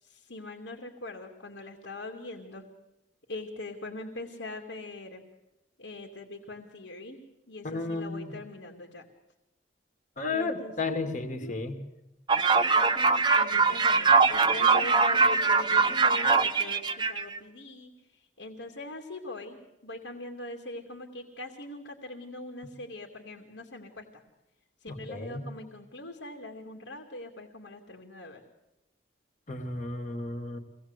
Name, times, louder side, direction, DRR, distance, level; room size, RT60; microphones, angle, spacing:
voice 1, 0.0-2.6 3.3-5.2 5.8-7.2 7.5-9.0 10.3-11.6 13.3-24.2 24.8-28.4, left 2 dB, 85° left, 1 dB, 2.6 m, -42 dB
voice 2, 7.6-8.4 10.2-11.7 24.9-25.5 29.5-30.6, left 3 dB, 40° left, 6 dB, 2.2 m, -33 dB
sound 1, 12.3-17.4, right 4 dB, 25° right, 0.9 m, -22 dB
24.5 x 18.5 x 8.2 m, 0.93 s
head